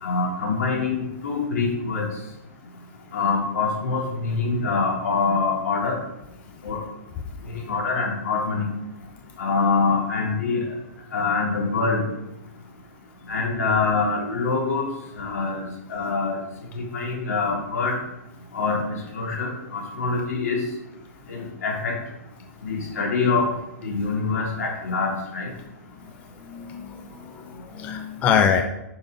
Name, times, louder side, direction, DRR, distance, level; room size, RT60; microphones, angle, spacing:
voice 1, 0.0-2.1 3.1-6.0 6.6-6.8 7.7-8.7 9.4-10.6 11.1-12.0 13.3-14.9 15.2-15.6 15.9-16.4 16.7-17.9 18.5-18.8 19.1-20.6 21.3-21.9 22.6-23.5 23.8-25.5, left 4 dB, 70° left, -1 dB, 3.4 m, -24 dB
voice 2, 26.4-28.6, left 7 dB, 15° left, 6 dB, 0.4 m, -24 dB
8.9 x 5.5 x 5.3 m, 0.91 s
hypercardioid pair, 165°, 9 cm